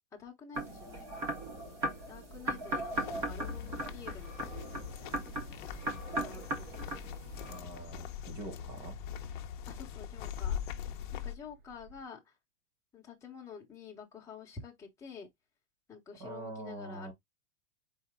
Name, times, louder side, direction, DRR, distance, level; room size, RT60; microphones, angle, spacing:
voice 1, 0.1-1.3 2.1-5.1 6.1-6.8 9.7-10.6 11.1-12.3 12.9-15.3 15.9-17.1, left 5 dB, 10° left, 1.0 m, -49 dB
sound 1, 0.5-7.6, right 1 dB, 10° right, 0.3 m, -38 dB
sound 2, 2.3-12.0, right 3 dB, 80° right, 3.3 m, -55 dB
sound 3, 2.9-11.3, left 9 dB, 45° left, 0.7 m, -42 dB
voice 2, 7.5-9.0 16.2-17.1, right 2 dB, 35° right, 2.0 m, -44 dB
4.5 x 2.8 x 3.6 m
supercardioid pair, 155°, 36 cm